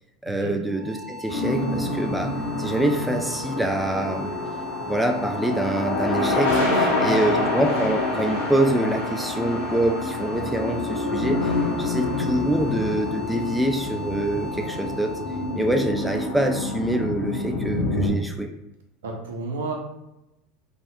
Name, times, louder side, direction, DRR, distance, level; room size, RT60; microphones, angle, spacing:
voice 1, 0.2-4.3 4.9-11.5 11.8-15.2 15.5-18.5, right 1 dB, 5° right, 3 dB, 0.3 m, -25 dB
sound 1, 0.7-17.6, left 3 dB, 50° right, 1.4 m, -38 dB
sound 2, 1.3-18.1, left 2 dB, 80° left, 0.6 m, -27 dB
voice 2, 6.6-7.4 19.0-19.8, right 3 dB, 80° right, 1 dB, 0.5 m, -31 dB
2.8 x 2.0 x 2.3 m, 0.88 s
hypercardioid pair, 80°, 0 cm